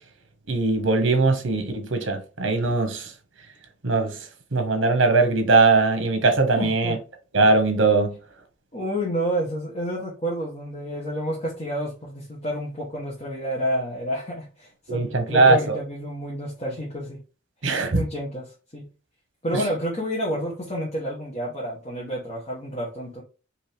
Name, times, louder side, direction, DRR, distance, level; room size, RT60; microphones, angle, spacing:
voice 1, 0.5-3.1 3.8-4.2 4.5-6.9 7.3-8.1 14.9-15.8 17.6-18.0 19.5-19.6, right 3 dB, 75° right, 1.1 m, -20 dB
voice 2, 6.6-7.0 8.7-17.2 17.9-18.9 19.4-23.2, equal, 35° left, 1.1 m, -29 dB
4.5 x 2.9 x 3.4 m
head